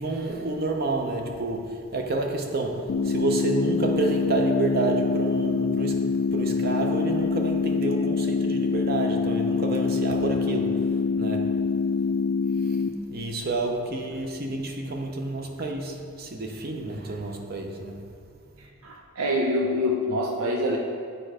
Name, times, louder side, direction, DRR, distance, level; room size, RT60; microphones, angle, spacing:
voice 1, 0.0-11.6 12.6-12.8 13.1-18.1, right 2 dB, 45° right, 0.7 m, -29 dB
sound 1, 2.9-12.9, left 4 dB, 70° left, 0.4 m, -25 dB
voice 2, 18.6-20.8, left 1 dB, 80° right, 0.6 m, -26 dB
8.5 x 4.4 x 4.9 m
head